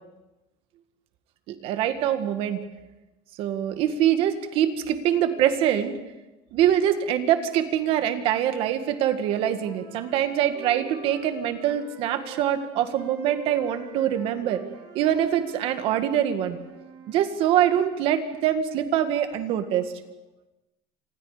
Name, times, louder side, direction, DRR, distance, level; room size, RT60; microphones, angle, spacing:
voice 1, 1.5-2.6 3.4-5.9 6.5-14.7 14.9-16.6 17.1-19.9, right 10 dB, 45° right, 9 dB, 1.9 m, -24 dB
sound 1, 8.3-12.4 12.9-17.2, right 5 dB, 80° right, 6.4 m, -45 dB
27.5 x 26.5 x 5.1 m, 1.0 s
cardioid pair, 175°, 13 cm